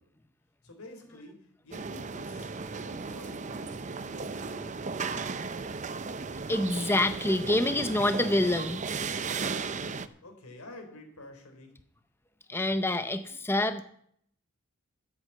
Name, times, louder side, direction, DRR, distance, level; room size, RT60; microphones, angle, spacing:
voice 1, 0.6-5.7 9.6-11.7, left 1 dB, 90° left, 4 dB, 3.7 m, -49 dB
sound 1, 1.7-10.1, right 4 dB, 35° right, 0.6 m, -35 dB
voice 2, 6.5-8.9 12.5-13.8, left 1 dB, 10° left, 9 dB, 0.6 m, -27 dB
13.0 x 8.1 x 7.7 m, 0.66 s
head